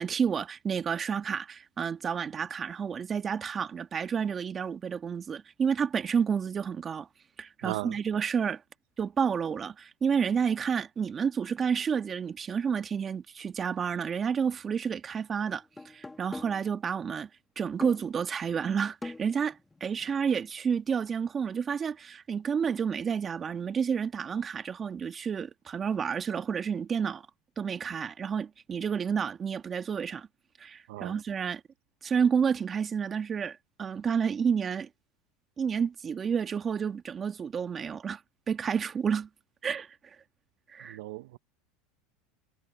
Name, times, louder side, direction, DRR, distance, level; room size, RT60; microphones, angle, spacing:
voice 1, 0.0-7.1 7.4-8.6 9.0-17.3 17.6-27.3 27.6-30.3 30.6-31.6 32.0-34.9 35.6-38.2 38.5-39.3 39.6-40.2 40.7-41.0, right 7 dB, 30° right, 1.9 m, -30 dB
voice 2, 7.6-8.0 30.9-31.2 40.9-41.4, right 18 dB, 75° right, 1.4 m, -36 dB
sound 1, 14.4-14.6 15.5-16.7 17.8-18.2 19.0-20.3, left 2 dB, 10° left, 2.4 m, -43 dB
supercardioid pair, 105°, 0 cm